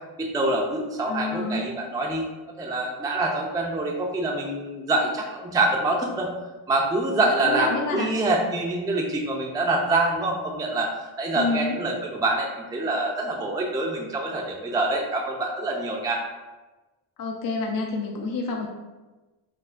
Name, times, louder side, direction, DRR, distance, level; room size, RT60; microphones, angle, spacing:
voice 1, 0.2-2.3 2.6-6.3 6.7-16.2, right 2 dB, 10° right, -1 dB, 0.4 m, -25 dB
voice 2, 1.1-1.7 7.4-8.1 11.3-11.8 17.2-18.7, left 3 dB, 45° left, 1 dB, 0.5 m, -28 dB
4.5 x 2.1 x 2.4 m, 1.2 s
cardioid pair, 80°, 48 cm